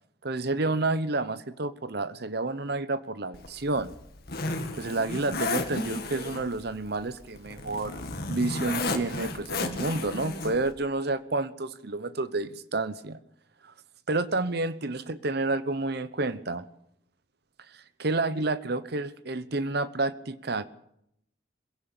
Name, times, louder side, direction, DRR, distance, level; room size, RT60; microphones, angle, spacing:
voice 1, 0.2-3.9 4.7-13.2 13.6-13.7 14.1-16.7 17.7-20.6, right 2 dB, 55° right, 14 dB, 0.9 m, -30 dB
Zipper (clothing), 3.3-10.7, left 3 dB, 50° left, 2.2 m, -34 dB
22.5 x 16.0 x 7.1 m, 0.77 s
head